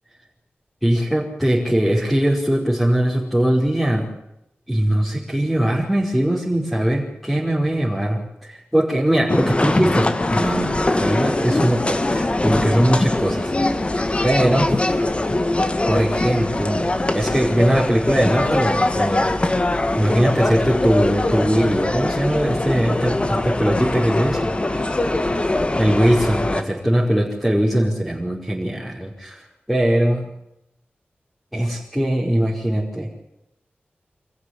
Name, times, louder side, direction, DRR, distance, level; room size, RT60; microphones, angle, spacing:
voice 1, 0.8-4.1 4.7-13.5 13.8-14.9 15.9-16.9 17.1-19.6 19.9-24.8 25.8-30.2 31.5-33.1, right 1 dB, ahead, -5 dB, 5.2 m, -21 dB
sound 1, 9.3-26.6, left 2 dB, 30° left, 1.9 m, -22 dB
26.0 x 14.5 x 9.9 m, 0.85 s
wide cardioid pair, 90°, 4 cm